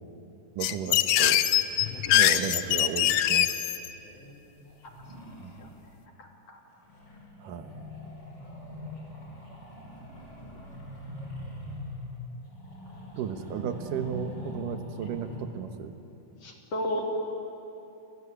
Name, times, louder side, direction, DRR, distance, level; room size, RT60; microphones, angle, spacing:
sound 1, 0.6-3.9, left 12 dB, 75° left, 1.5 m, -23 dB
voice 1, 0.6-1.4 2.1-3.5 5.4-5.6 7.4-7.8 13.1-16.0, right 7 dB, 80° right, 8 dB, 2.8 m, -34 dB
voice 2, 4.0-4.6 5.6-5.7 6.2-6.6 8.5-8.6 15.0-15.1 16.4-17.0, equal, 50° left, 2 dB, 3.7 m, -36 dB
sound 2, 4.7-5.8 6.8-15.4, equal, 30° left, 6.5 m, -42 dB
29.0 x 20.0 x 9.9 m, 2.8 s
omnidirectional pair, 3.8 m